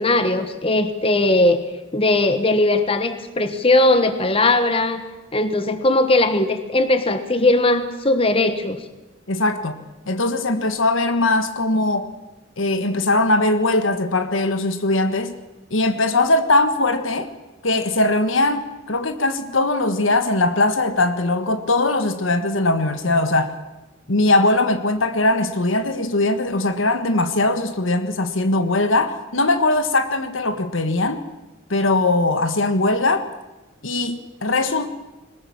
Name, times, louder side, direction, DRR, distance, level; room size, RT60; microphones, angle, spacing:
voice 1, 0.0-1.6 1.9-5.0 5.3-8.8, left 2 dB, 30° left, 10 dB, 1.4 m, -19 dB
voice 2, 9.3-9.8 10.1-12.1 12.6-15.4 15.7-17.3 17.6-23.5 24.1-31.2 31.7-33.3 33.8-34.9, left 2 dB, 80° left, 9 dB, 1.6 m, -20 dB
21.5 x 20.5 x 7.2 m, 1.1 s
head